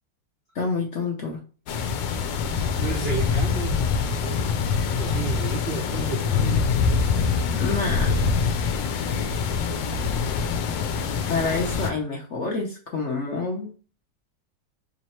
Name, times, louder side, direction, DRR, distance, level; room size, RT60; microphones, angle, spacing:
voice 1, 0.5-1.4 7.5-8.3 11.3-13.7, left 3 dB, 55° left, -1 dB, 0.8 m, -28 dB
sound 1, 1.7-11.9, left 5 dB, 90° left, 1.3 m, -24 dB
voice 2, 2.8-3.8 4.2-4.5 4.8-6.8 8.6-8.9, right 5 dB, 60° right, -2 dB, 0.6 m, -33 dB
3.1 x 3.1 x 4.2 m, 0.37 s
omnidirectional pair, 1.9 m